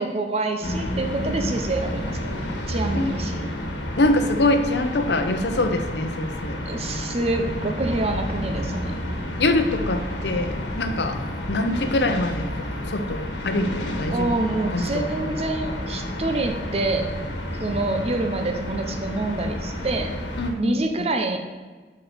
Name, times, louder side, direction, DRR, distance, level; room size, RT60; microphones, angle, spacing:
voice 1, 0.0-3.5 6.7-9.0 14.1-17.1 17.6-20.2 20.6-21.4, right 2 dB, 35° right, 4 dB, 0.7 m, -27 dB
sound 1, 0.6-20.5, left 1 dB, 80° left, 1.5 m, -30 dB
voice 2, 4.0-6.6 9.4-11.2 11.5-14.4 14.7-14.8 20.4-21.1, left 2 dB, 65° left, 7 dB, 0.8 m, -24 dB
6.0 x 5.3 x 6.8 m, 1.3 s
head